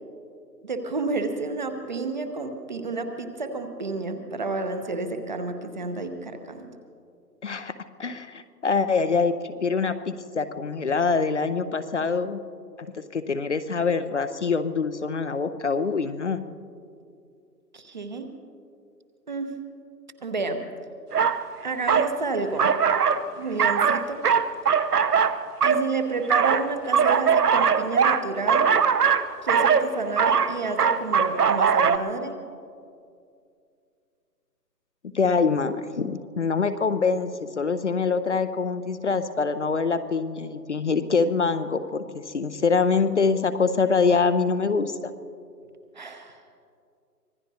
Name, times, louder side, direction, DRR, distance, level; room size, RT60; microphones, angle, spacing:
voice 1, 0.6-6.7 17.7-18.3 19.3-19.5 20.2-20.6 21.6-22.8 23.4-24.2 25.6-28.7 29.4-32.4 45.9-46.4, right 3 dB, 30° right, 6 dB, 0.8 m, -30 dB
voice 2, 7.4-12.4 12.9-16.4 35.1-37.3 37.6-45.1, left 4 dB, 45° left, 11 dB, 0.6 m, -24 dB
sound 1, 21.1-21.4 21.9-22.1 22.6-23.3 23.6-25.8 26.3-32.0, right 6 dB, 70° right, 0.9 m, -21 dB
25.5 x 18.0 x 2.8 m, 2.4 s
figure-of-eight pair, 150°, 49 cm